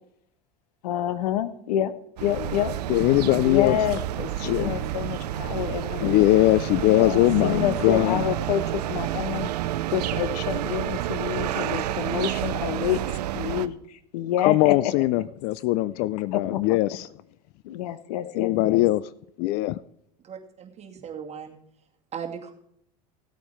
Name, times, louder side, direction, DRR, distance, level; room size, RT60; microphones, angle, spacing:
voice 1, 0.8-1.9 2.2-2.7 3.4-6.1 6.8-9.5 9.9-13.0 13.3-14.9 16.3-16.8 17.6-18.8, left 11 dB, 75° left, 1.0 m, -28 dB
sound 1, 2.2-13.7, right 13 dB, 80° right, 0.6 m, -29 dB
voice 2, 2.9-3.8 4.4-4.8 6.0-8.3 14.4-17.1 18.3-19.0 19.4-19.8, left 17 dB, 55° left, 0.5 m, -21 dB
voice 3, 20.2-21.6 22.1-22.5, right 7 dB, 35° right, 2.3 m, -37 dB
16.0 x 8.3 x 4.5 m
hypercardioid pair, 85°, 20 cm